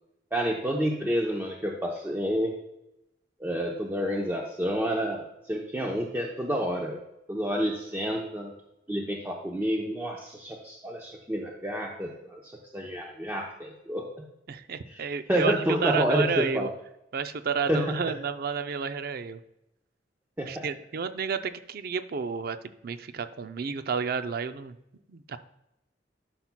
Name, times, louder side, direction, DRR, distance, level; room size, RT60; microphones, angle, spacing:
voice 1, 0.3-2.6 3.4-7.0 7.3-8.5 8.9-14.2 14.9-16.7 17.7-18.0 20.4-20.7, equal, 10° right, -1 dB, 0.7 m, -29 dB
voice 2, 14.5-16.7 17.1-19.4 20.5-22.6 22.8-24.7 25.1-25.4, right 6 dB, 55° right, 11 dB, 0.4 m, -31 dB
12.0 x 5.8 x 2.2 m, 0.88 s
head